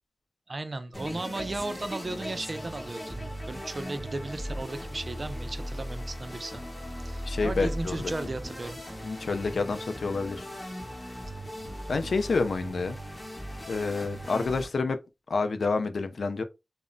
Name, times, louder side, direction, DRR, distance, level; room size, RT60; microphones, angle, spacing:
voice 1, 0.5-6.6 7.0-8.8 11.3-11.4, right 2 dB, 45° right, 0.4 m, -35 dB
sound 1, 0.9-14.7, equal, 20° left, 0.9 m, -38 dB
voice 2, 7.3-8.1 9.0-10.4 11.9-13.0 13.7-15.0 15.3-16.4, left 4 dB, 80° left, 0.4 m, -28 dB
2.1 x 2.0 x 3.7 m
wide cardioid pair, 80°, 0 cm